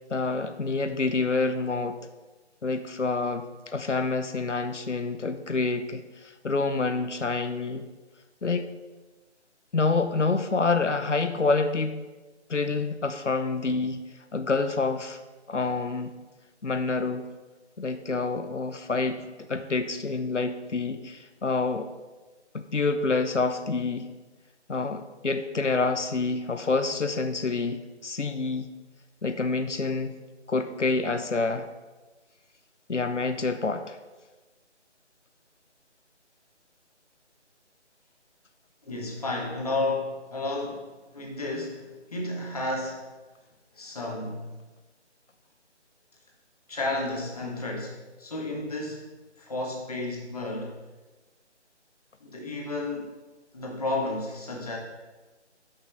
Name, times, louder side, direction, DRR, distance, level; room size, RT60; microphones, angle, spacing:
voice 1, 0.1-2.0 2.6-3.5 3.7-7.9 8.4-8.7 9.7-12.0 12.5-14.0 14.3-15.2 15.5-16.1 16.6-17.3 17.8-21.9 22.5-24.1 24.7-28.7 29.2-30.2 30.5-31.7 32.9-34.0, left 3 dB, 90° left, 9 dB, 0.8 m, -27 dB
voice 2, 38.8-43.0 43.7-44.5 46.7-49.1 49.4-50.7 52.2-53.1 53.5-54.8, left 2 dB, 30° left, -1 dB, 1.5 m, -32 dB
12.5 x 5.6 x 3.4 m, 1.2 s
figure-of-eight pair, 155°, 35 cm